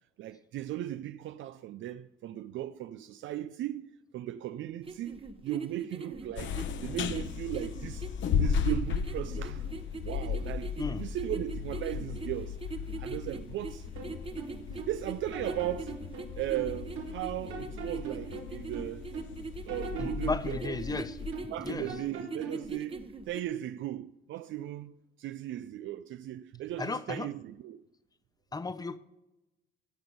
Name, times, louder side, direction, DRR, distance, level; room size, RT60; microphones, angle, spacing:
voice 1, 0.2-6.6 6.8-9.7 10.0-12.6 13.0-13.9 14.9-16.0 16.4-19.1 19.6-20.8 21.5-27.8, right 13 dB, 75° right, 0.4 m, -37 dB
sound 1, 4.8-23.4, right 4 dB, 30° right, 1.0 m, -42 dB
sound 2, 6.4-21.3, left 7 dB, 75° left, 0.9 m, -36 dB
sound 3, 14.0-15.0 15.3-17.2 17.5-19.3 19.7-21.6 21.9-22.7, right 4 dB, 90° right, 2.2 m, -41 dB
voice 2, 20.0-21.9 26.8-27.3 28.5-29.0, left 3 dB, 20° left, 0.6 m, -35 dB
17.0 x 6.1 x 5.4 m
cardioid pair, 90°, 20 cm